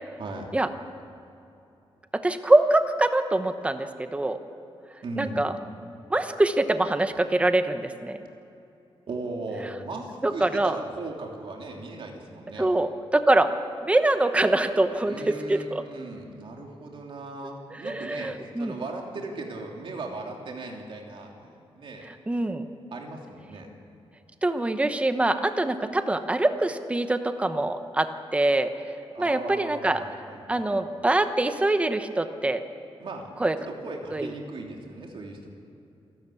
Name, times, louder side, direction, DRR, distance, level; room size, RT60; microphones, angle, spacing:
voice 1, 0.2-0.5 5.0-5.4 9.1-12.7 15.0-22.1 22.9-23.7 29.1-30.7 33.0-33.3 33.7-35.5, right 2 dB, 60° right, 1 dB, 3.0 m, -38 dB
voice 2, 2.1-4.4 5.2-5.5 6.1-8.2 10.2-10.8 12.6-13.5 13.8-15.8 17.8-18.8 22.1-22.7 24.4-28.7 29.2-30.0 30.5-32.6 33.4-33.6 34.1-34.3, right 2 dB, 10° right, 9 dB, 0.9 m, -24 dB
27.5 x 12.5 x 8.4 m, 2.7 s
wide cardioid pair, 165°, 10 cm